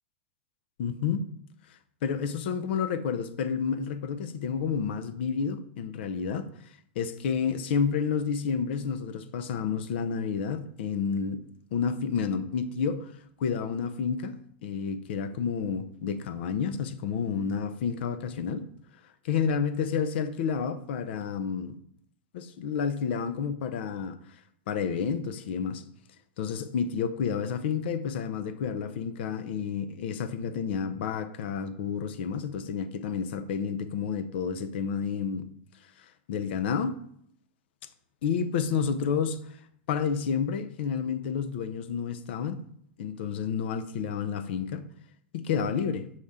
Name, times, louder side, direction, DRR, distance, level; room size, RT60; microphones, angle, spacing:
voice 1, 0.8-1.3 2.0-6.5 7.0-11.5 11.7-13.1 13.4-14.4 14.6-18.6 19.2-21.8 22.3-24.2 24.7-25.8 26.4-35.5 36.0-37.0 38.2-39.6 39.9-42.6 43.0-44.9 45.3-46.1, left 6 dB, 65° left, 0.6 m, -30 dB
6.4 x 4.2 x 3.6 m
hypercardioid pair, 135°, 6 cm